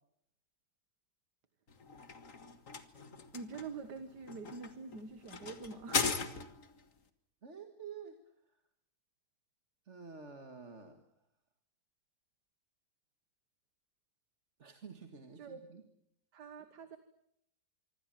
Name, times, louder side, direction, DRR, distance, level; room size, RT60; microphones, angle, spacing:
sound 1, 1.7-6.8, left 5 dB, 55° left, 2.0 m, -39 dB
voice 1, 3.3-6.0 15.4-15.6 16.3-17.0, right 4 dB, 90° right, 10 dB, 2.1 m, -45 dB
voice 2, 7.4-8.2 9.9-11.0 14.6-15.8, right 5 dB, 45° right, 6 dB, 2.0 m, -49 dB
25.5 x 25.0 x 7.6 m, 0.75 s
omnidirectional pair, 1.7 m